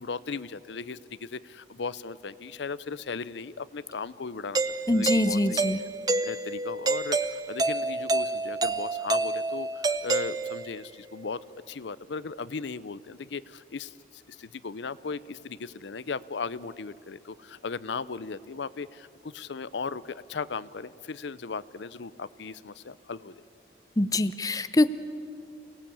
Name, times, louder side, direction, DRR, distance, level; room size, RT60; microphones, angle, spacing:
voice 1, 0.0-4.6 4.9-5.6 6.2-11.4 11.7-23.4, left 4 dB, 80° left, 17 dB, 0.6 m, -37 dB
Doorbell, 4.5-10.9, right 3 dB, 20° right, 0.6 m, -28 dB
voice 2, 4.9-5.8 24.0-24.9, left 1 dB, 20° left, 13 dB, 0.6 m, -24 dB
28.5 x 18.0 x 8.6 m, 2.6 s
head